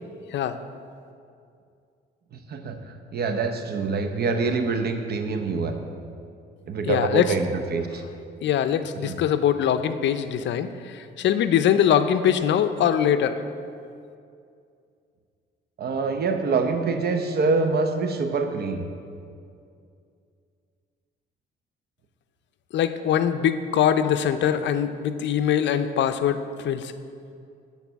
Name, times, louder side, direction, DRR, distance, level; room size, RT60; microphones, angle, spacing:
voice 1, 2.3-5.8 6.7-8.0 9.0-9.1 15.8-18.9, right 4 dB, 55° right, 6 dB, 0.8 m, -25 dB
voice 2, 6.8-7.3 8.4-13.4 22.7-26.9, left 9 dB, 65° left, 11 dB, 0.5 m, -22 dB
8.3 x 4.1 x 6.9 m, 2.4 s
cardioid pair, 90°, 20 cm